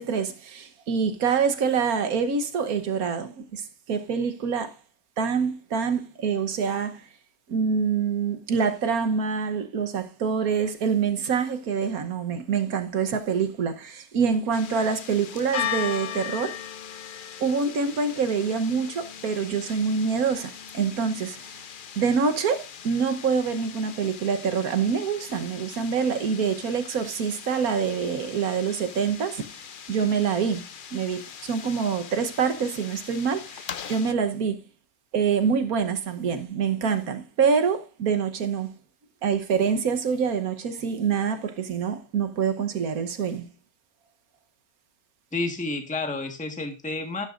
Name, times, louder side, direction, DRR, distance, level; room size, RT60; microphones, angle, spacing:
voice 1, 0.0-4.7 5.2-7.0 7.5-16.6 17.4-21.4 21.9-29.4 29.9-30.6 30.9-34.6 35.1-38.7 39.2-43.5, right 6 dB, 75° right, 1.5 m, -26 dB
sound 1, 14.5-34.1, left 9 dB, 55° left, 0.6 m, -39 dB
voice 2, 45.3-47.2, left 3 dB, 5° left, 1.4 m, -30 dB
12.0 x 11.5 x 2.5 m
omnidirectional pair, 1.6 m